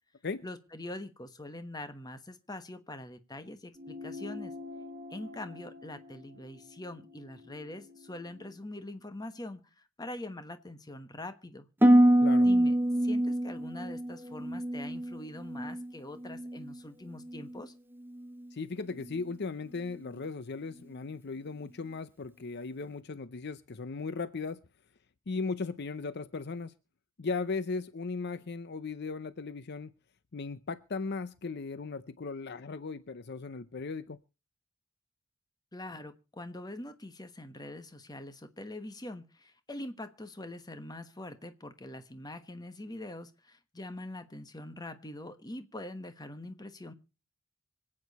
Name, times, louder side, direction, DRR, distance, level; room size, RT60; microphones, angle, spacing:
voice 1, 0.4-4.5 5.1-11.7 12.4-12.7 13.0-17.7 35.7-46.9, left 1 dB, 20° left, 1.2 m, -43 dB
sound 1, 3.7-8.6, left 3 dB, 35° right, 1.5 m, -47 dB
Harp, 11.8-15.9 16.2-16.8 17.3-17.6, right 1 dB, 10° right, 0.7 m, -25 dB
voice 2, 18.5-24.6 25.3-26.7 27.2-29.9 30.3-34.2, left 4 dB, 50° left, 0.6 m, -37 dB
25.5 x 8.7 x 4.1 m
head